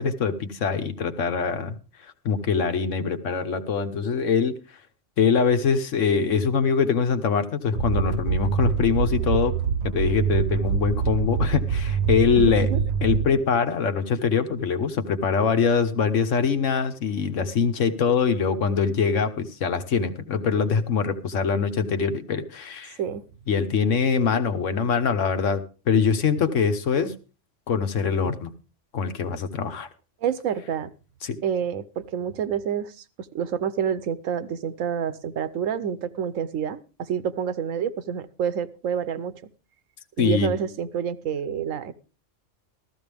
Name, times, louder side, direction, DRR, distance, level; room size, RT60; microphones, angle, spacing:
voice 1, 0.0-1.7 2.2-4.6 5.2-9.6 9.8-12.7 13.0-23.0 23.5-27.1 27.7-28.5 28.9-29.9 31.2-31.4 40.2-40.5, left 6 dB, 75° left, 9 dB, 1.4 m, -23 dB
sound 1, 7.7-13.6, right 6 dB, 60° right, 1.0 m, -25 dB
voice 2, 12.4-12.9 23.0-23.2 30.2-30.9 31.4-33.0 33.3-39.3 40.2-41.9, right 8 dB, 80° right, 14 dB, 1.2 m, -28 dB
14.5 x 14.0 x 3.4 m, 0.33 s
omnidirectional pair, 1.3 m